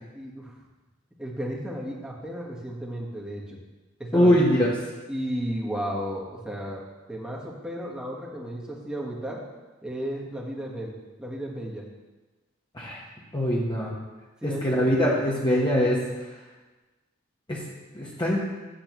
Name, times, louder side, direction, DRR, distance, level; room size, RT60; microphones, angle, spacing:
voice 1, 0.1-0.5 1.2-3.6 4.0-4.4 5.1-6.8 7.1-9.4 9.8-11.9 14.4-14.7, equal, 5° right, -4 dB, 1.4 m, -34 dB
voice 2, 4.1-4.7 12.7-13.0 13.3-13.9 14.4-16.0 17.5-17.6 17.9-18.4, equal, 25° left, -5 dB, 1.2 m, -22 dB
10.0 x 7.3 x 3.1 m, 1.2 s
head